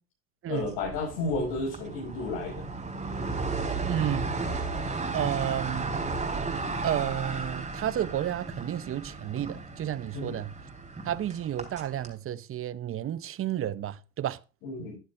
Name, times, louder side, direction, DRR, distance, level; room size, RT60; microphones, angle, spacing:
voice 1, 0.5-2.6 10.1-10.4 14.6-15.0, left 3 dB, 80° left, 6.7 m, -32 dB
sound 1, 0.6-12.1, right 3 dB, 20° right, 3.7 m, -34 dB
voice 2, 3.9-4.3 5.1-5.9 6.8-10.5 11.0-14.4, right 11 dB, 40° right, 0.7 m, -31 dB
14.0 x 10.5 x 2.5 m
supercardioid pair, 80°, 33 cm